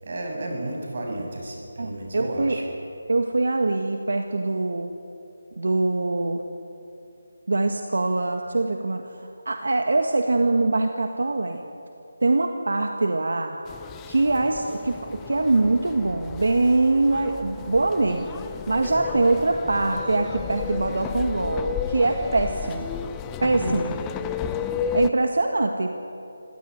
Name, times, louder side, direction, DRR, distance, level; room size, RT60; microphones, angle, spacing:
voice 1, 0.0-2.7 23.6-23.8, right 1 dB, 45° right, 1 dB, 6.9 m, -32 dB
voice 2, 1.8-2.6 3.1-4.9 5.6-6.4 7.5-11.6 12.2-13.6 14.1-18.3 18.7-22.9 23.4-23.9 24.9-25.9, right 2 dB, 75° right, 5 dB, 1.8 m, -23 dB
sound 1, 13.7-25.1, left 8 dB, 10° left, 0.5 m, -33 dB
26.0 x 16.5 x 9.6 m, 2.8 s
figure-of-eight pair, 170°, 0 cm